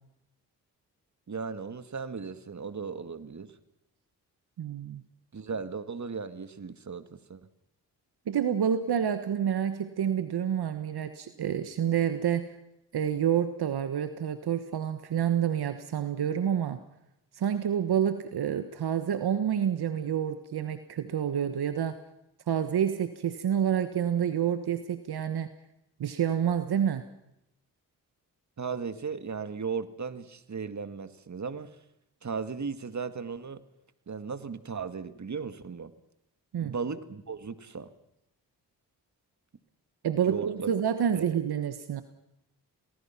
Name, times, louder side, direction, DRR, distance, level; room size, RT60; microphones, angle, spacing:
voice 1, 1.3-3.5 5.3-7.5 28.6-31.8 32.2-33.6 34.1-35.9 36.6-37.9 40.3-40.7 41.1-41.3, right 5 dB, 45° right, 11 dB, 2.0 m, -36 dB
voice 2, 4.6-5.0 8.3-12.5 12.9-16.8 17.3-22.0 22.5-25.5 26.0-27.0 36.5-36.7 40.0-42.0, right 9 dB, 70° right, 10 dB, 1.4 m, -28 dB
28.5 x 19.0 x 6.0 m, 0.84 s
supercardioid pair, 50°, 40 cm